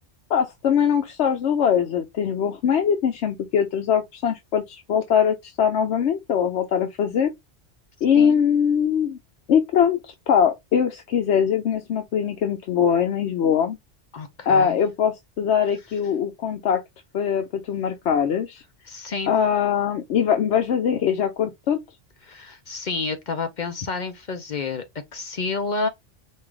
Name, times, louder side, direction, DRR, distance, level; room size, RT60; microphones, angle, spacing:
voice 1, 0.3-7.3 8.0-9.2 9.5-13.8 14.5-16.8 17.1-18.6 19.3-21.8, left 8 dB, 80° left, 1.0 m, -22 dB
voice 2, 14.1-14.8 18.9-19.4 22.2-24.8 25.1-25.9, left 4 dB, 50° left, 0.7 m, -29 dB
5.4 x 2.4 x 3.2 m
omnidirectional pair, 1.1 m